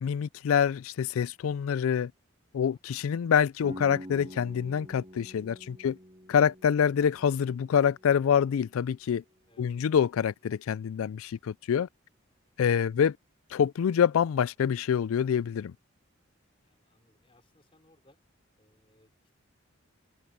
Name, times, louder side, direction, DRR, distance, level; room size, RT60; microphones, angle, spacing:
voice 1, 0.0-2.1 2.5-6.0 6.3-9.2 9.6-11.9 12.6-13.2 13.5-15.7, left 8 dB, 80° left, 0.3 m, -26 dB
voice 2, 2.5-2.8 5.6-5.9 9.5-9.7 12.8-13.0 16.3-18.2 18.6-19.4, left 1 dB, 25° left, 5.1 m, -66 dB
sound 1, 3.6-9.4, equal, 25° right, 2.7 m, -47 dB
head